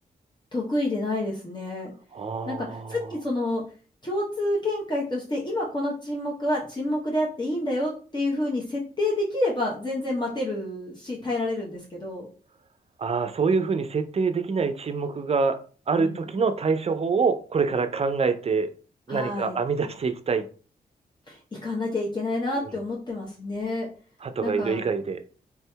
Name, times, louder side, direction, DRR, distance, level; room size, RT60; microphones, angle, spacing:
voice 1, 0.5-1.9 2.5-3.6 4.0-12.3 16.0-16.2 19.1-19.6 21.3-23.9 24.4-24.8, left 1 dB, 25° left, -4 dB, 0.8 m, -28 dB
voice 2, 2.1-3.1 13.0-15.6 15.9-18.7 19.1-20.5 22.6-22.7 24.2-25.2, right 5 dB, 40° right, 9 dB, 0.4 m, -25 dB
3.4 x 2.7 x 2.2 m, 0.39 s
cardioid pair, 60°, 16 cm